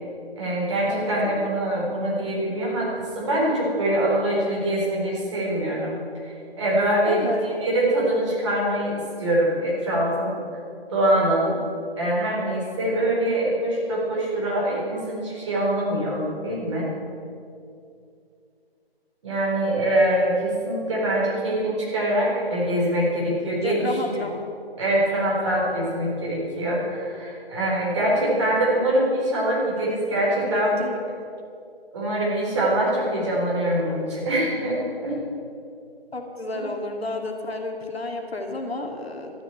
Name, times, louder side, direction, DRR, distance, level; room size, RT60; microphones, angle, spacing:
voice 1, 0.4-6.0 6.3-10.4 10.9-11.6 12.0-16.9 19.2-24.0 24.8-30.8 31.9-35.2 36.5-36.7, right 1 dB, 30° right, -5 dB, 4.1 m, -24 dB
voice 2, 0.9-1.5 7.0-7.5 23.6-24.4 29.8-30.9 36.1-39.3, left 2 dB, 75° left, 3 dB, 2.4 m, -31 dB
13.0 x 9.7 x 8.7 m, 2.5 s
figure-of-eight pair, 165°, 31 cm